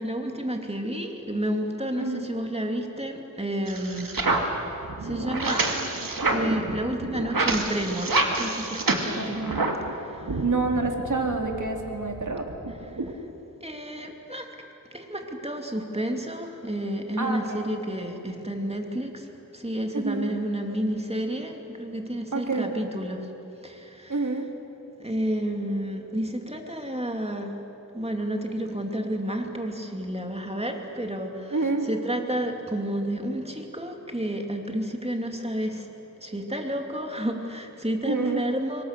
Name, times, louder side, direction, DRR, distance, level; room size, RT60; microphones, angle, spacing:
voice 1, 0.0-4.1 5.0-5.6 6.2-9.4 13.6-14.5 14.9-19.1 19.5-23.2 23.6-24.2 25.0-27.5 27.9-31.6 31.9-35.8 36.2-38.8, right 1 dB, 20° right, 3 dB, 2.8 m, -30 dB
sound 1, 3.7-9.9 10.2-13.1, right 2 dB, 85° right, 2.2 m, -28 dB
voice 2, 9.2-9.7 10.4-12.4 17.2-17.7 19.9-20.3 22.3-22.7 24.1-24.4 31.5-31.9 38.1-38.4, right 3 dB, 60° right, 2 dB, 3.0 m, -27 dB
27.0 x 23.0 x 6.8 m, 2.9 s
wide cardioid pair, 50°, 34 cm